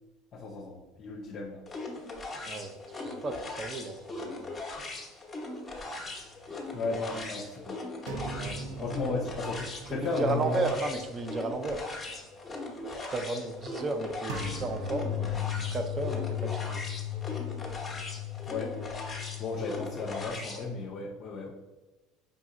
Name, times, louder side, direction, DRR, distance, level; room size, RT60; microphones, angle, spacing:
voice 1, 0.3-1.6 6.7-7.8 8.8-10.6 18.5-18.8 19.4-21.5, left 3 dB, 45° left, -2 dB, 0.5 m, -34 dB
sound 1, 1.7-20.6, left 2 dB, 15° left, 0.8 m, -40 dB
voice 2, 2.4-4.5 8.3-8.9 9.9-11.8 13.0-15.2 15.7-16.8, right 3 dB, 30° right, 7 dB, 0.5 m, -34 dB
sound 2, 8.1-11.2 11.5-11.7 14.3-20.3, left 7 dB, 80° right, 0.5 m, -37 dB
5.0 x 2.7 x 2.4 m, 1.1 s
supercardioid pair, 110°, 0 cm